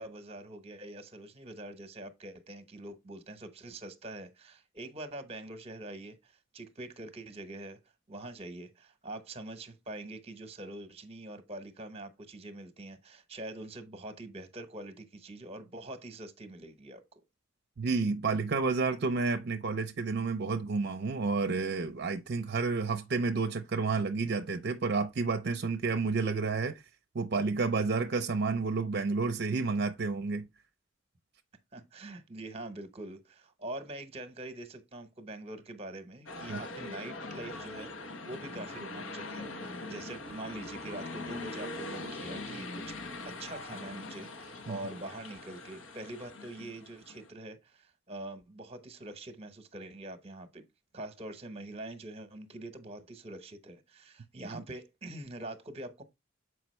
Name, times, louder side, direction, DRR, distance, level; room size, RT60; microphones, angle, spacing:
voice 1, 0.0-7.8 8.1-17.0 31.7-43.0 43.2-50.6 50.9-56.0, right 1 dB, 30° right, 0.9 m, -44 dB
voice 2, 17.8-26.8 27.1-30.5 36.5-36.6 44.7-44.8, right 4 dB, 55° right, 0.5 m, -30 dB
sound 1, 36.3-47.3, left 2 dB, 85° left, 1.2 m, -42 dB
7.1 x 4.8 x 3.1 m
head